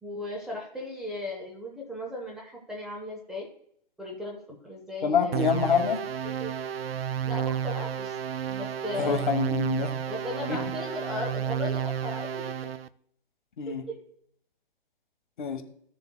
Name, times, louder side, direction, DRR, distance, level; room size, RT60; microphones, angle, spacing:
voice 1, 0.0-3.5 4.0-5.5 6.2-6.6 7.3-8.2 8.5-9.6 10.1-12.7 13.7-14.0, left 2 dB, ahead, -3 dB, 0.6 m, -37 dB
voice 2, 5.0-6.0 9.0-9.9 13.6-13.8 15.4-15.6, left 6 dB, 55° left, 6 dB, 1.3 m, -26 dB
sound 1, 5.3-12.9, right 9 dB, 85° right, 0.5 m, -31 dB
15.0 x 6.8 x 2.2 m, 0.67 s
hypercardioid pair, 145°, 29 cm